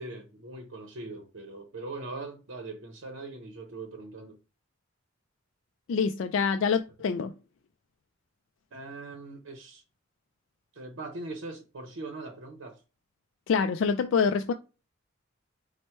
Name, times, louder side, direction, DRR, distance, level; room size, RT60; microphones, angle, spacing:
voice 1, 0.0-4.4 8.7-9.8 10.7-12.8, right 2 dB, 85° right, 0.7 m, -41 dB
voice 2, 5.9-7.3 13.5-14.5, left 5 dB, 70° left, 0.3 m, -26 dB
4.4 x 2.1 x 4.3 m
head